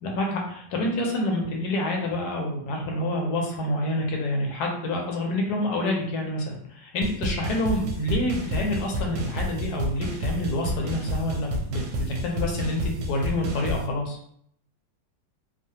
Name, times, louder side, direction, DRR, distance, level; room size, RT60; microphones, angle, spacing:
voice 1, 0.0-11.8 12.1-14.2, left 1 dB, 65° left, 0 dB, 1.1 m, -27 dB
sound 1, 7.0-13.9, right 1 dB, 75° right, 1.2 m, -30 dB
3.1 x 2.0 x 2.8 m, 0.66 s
omnidirectional pair, 2.0 m